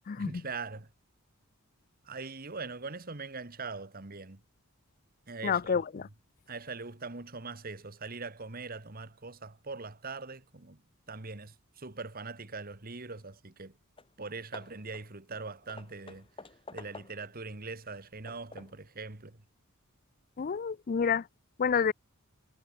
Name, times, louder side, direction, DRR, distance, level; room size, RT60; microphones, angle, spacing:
voice 1, 0.2-0.9 2.0-4.4 5.3-6.1 6.5-10.8 11.1-13.8 14.2-16.3 16.7-19.4, right 4 dB, 40° right, 1.7 m, -42 dB
voice 2, 5.4-6.0 20.4-21.2 21.6-21.9, left 6 dB, 40° left, 0.4 m, -28 dB
Hammer / Wood, 13.6-13.7 14.0-14.2 14.5-17.4 17.9-18.9, left 3 dB, 25° left, 2.1 m, -50 dB
head